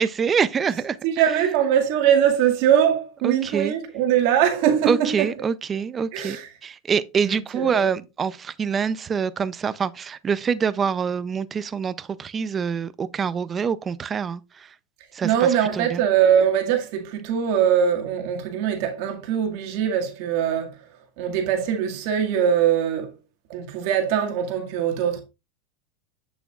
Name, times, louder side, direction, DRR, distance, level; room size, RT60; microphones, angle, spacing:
voice 1, 0.0-1.0 3.2-3.7 4.9-6.4 6.6-14.7 15.1-16.0, right 6 dB, 25° right, 0.5 m, -25 dB
voice 2, 1.0-5.3 6.1-6.5 7.2-7.9 15.2-20.9 21.2-23.2 23.5-25.2, right 9 dB, 60° right, 2.0 m, -22 dB
8.4 x 6.9 x 2.4 m
supercardioid pair, 130°, 0 cm